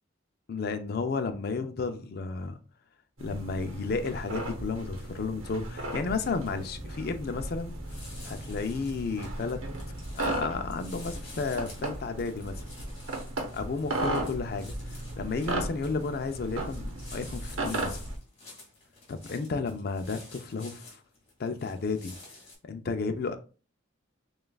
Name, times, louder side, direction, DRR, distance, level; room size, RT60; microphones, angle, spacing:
voice 1, 0.5-2.6 3.2-7.8 8.2-9.6 9.9-12.6 13.5-14.7 15.2-18.0 19.1-21.0 21.4-22.1 22.7-23.4, left 4 dB, 50° left, 0.4 m, -32 dB
sound 1, 3.2-18.2, right 2 dB, 90° right, 0.9 m, -36 dB
sound 2, 6.7-10.8, equal, 20° right, 0.5 m, -45 dB
sound 3, 7.6-22.5, left 2 dB, 30° left, 1.9 m, -50 dB
6.4 x 2.4 x 2.3 m
head